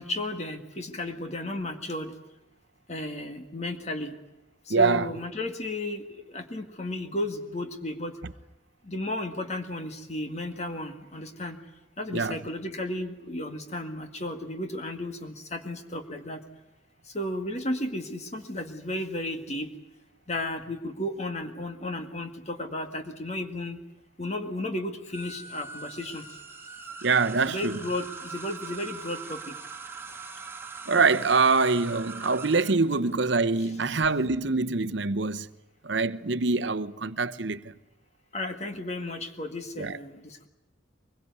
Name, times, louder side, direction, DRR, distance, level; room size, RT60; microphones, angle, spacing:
voice 1, 0.0-2.1 2.9-4.1 4.7-8.2 8.8-11.6 12.0-16.4 17.0-19.7 20.3-23.8 24.2-26.3 27.5-29.6 38.3-40.5, left 1 dB, 35° left, 1.9 m, -34 dB
voice 2, 4.7-5.1 12.1-12.4 27.0-27.8 30.9-35.5 35.8-37.7 39.8-40.0, right 4 dB, 70° right, 0.9 m, -24 dB
sound 1, 25.1-34.1, right 4 dB, 10° right, 2.4 m, -42 dB
23.5 x 22.0 x 9.5 m
head